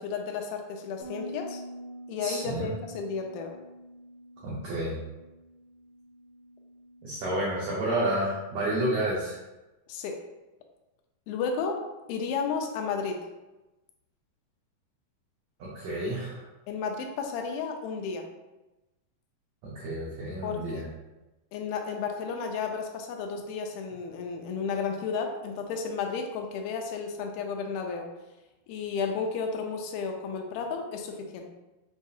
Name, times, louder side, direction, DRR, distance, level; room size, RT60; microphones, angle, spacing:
voice 1, 0.0-1.6 2.1-3.5 9.9-10.2 11.3-11.8 12.1-13.2 16.7-18.3 20.4-20.9 21.5-28.1 28.7-31.4, left 5 dB, 85° left, 3 dB, 2.4 m, -32 dB
Bass guitar, 1.0-7.2, equal, 70° left, 1.9 m, -46 dB
voice 2, 2.2-2.7 4.4-5.0 7.0-9.4 15.6-16.4 19.6-20.8, right 1 dB, 90° right, -6 dB, 1.5 m, -30 dB
6.9 x 2.7 x 2.4 m, 1.0 s
omnidirectional pair, 4.2 m